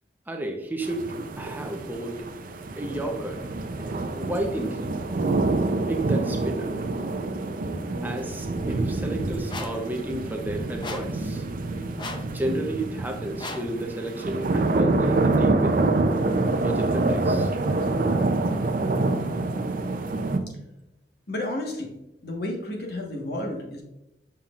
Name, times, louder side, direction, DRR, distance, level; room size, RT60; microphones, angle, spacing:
voice 1, 0.3-2.3 2.8-3.5 3.8-4.9 5.9-6.7 8.0-11.4 12.3-15.8 16.6-17.5, right 1 dB, 10° right, 3 dB, 0.8 m, -32 dB
sound 1, 0.8-20.4, right 2 dB, 50° right, 0.5 m, -26 dB
sound 2, 9.5-9.9 10.8-11.2 12.0-12.4 13.4-13.8, left 3 dB, 25° left, 0.5 m, -36 dB
voice 2, 21.3-21.9 22.2-23.8, left 1 dB, 60° left, 1 dB, 1.4 m, -31 dB
7.3 x 5.7 x 2.5 m, 0.89 s
head